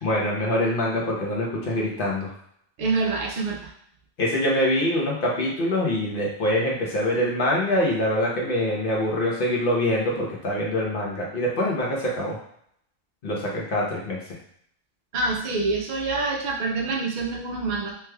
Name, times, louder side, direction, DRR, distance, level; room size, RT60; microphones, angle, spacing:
voice 1, 0.0-2.3 4.2-12.4 13.2-14.2, left 1 dB, 45° left, -3 dB, 0.9 m, -24 dB
voice 2, 2.8-3.7 15.1-17.9, right 3 dB, 70° right, -1 dB, 0.4 m, -26 dB
3.3 x 3.1 x 2.2 m, 0.69 s
omnidirectional pair, 1.4 m